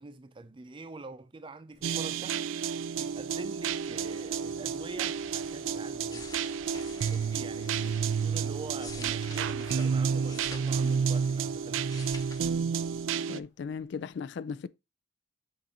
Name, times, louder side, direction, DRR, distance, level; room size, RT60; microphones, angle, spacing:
voice 1, 0.0-2.4 2.9-6.4 6.7-12.4, right 3 dB, 25° right, 0.4 m, -45 dB
Mechanisms, 1.7-14.1, left 2 dB, 40° left, 2.6 m, -55 dB
sound 1, 1.8-13.4, right 6 dB, 90° right, 0.3 m, -30 dB
sound 2, 6.1-8.0 8.6-11.5 11.7-12.5 12.8-13.0, left 3 dB, 20° left, 0.8 m, -48 dB
voice 2, 13.3-14.7, left 6 dB, 60° left, 0.3 m, -37 dB
7.6 x 2.7 x 4.7 m
head